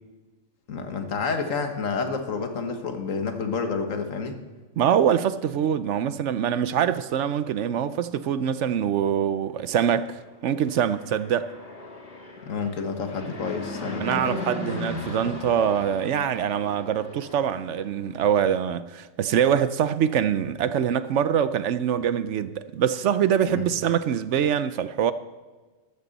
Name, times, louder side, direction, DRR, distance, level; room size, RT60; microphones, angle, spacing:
voice 1, 0.7-4.4 12.4-14.2 23.4-23.7, left 5 dB, 75° left, 1.7 m, -29 dB
voice 2, 4.8-11.5 14.0-25.1, right 9 dB, 70° right, 0.9 m, -24 dB
Fixed-wing aircraft airplane, 10.5-17.9, left 2 dB, 50° left, 2.2 m, -37 dB
14.0 x 13.0 x 4.1 m
omnidirectional pair, 1.4 m